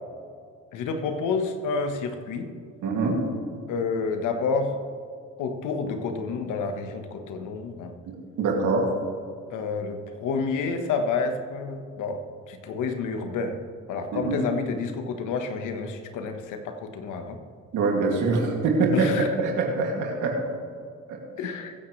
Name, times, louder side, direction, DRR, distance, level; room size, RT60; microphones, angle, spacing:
voice 1, 0.7-2.5 3.7-4.8 5.4-7.9 9.5-13.6 13.9-17.4 18.9-19.3 21.4-21.7, left 4 dB, 90° left, 6 dB, 1.4 m, -29 dB
voice 2, 2.8-3.2 8.1-8.9 14.1-14.4 17.7-19.1 19.4-20.4 21.1-21.2, right 3 dB, 80° right, -1 dB, 2.6 m, -24 dB
22.5 x 8.8 x 3.3 m, 2.2 s
cardioid pair, 90°, 30 cm